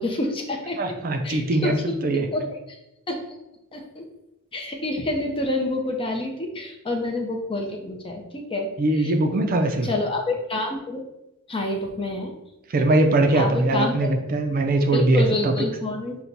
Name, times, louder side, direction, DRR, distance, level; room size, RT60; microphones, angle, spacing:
voice 1, 0.0-0.8 1.2-2.0 2.3-2.6 3.1-3.2 3.7-4.0 4.5-9.1 9.8-11.0 11.5-12.3 13.3-14.0 14.9-16.2, left 2 dB, 25° left, 3 dB, 0.6 m, -28 dB
voice 2, 0.8-2.3 8.8-9.9 12.7-15.5, right 2 dB, 40° right, 6 dB, 0.4 m, -21 dB
5.9 x 2.1 x 3.9 m, 0.91 s
head